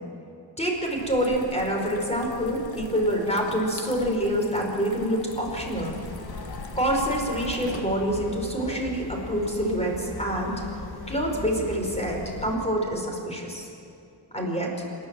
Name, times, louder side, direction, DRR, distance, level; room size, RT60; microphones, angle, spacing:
voice 1, 0.6-6.0 6.8-10.6 11.1-13.7 14.3-14.7, equal, 15° left, 0 dB, 5.2 m, -26 dB
sound 1, 0.7-8.3, left 4 dB, 85° left, 1.7 m, -42 dB
sound 2, 5.5-12.6, left 3 dB, 55° left, 2.2 m, -39 dB
28.0 x 12.0 x 7.7 m, 2.7 s
wide cardioid pair, 95°, 44 cm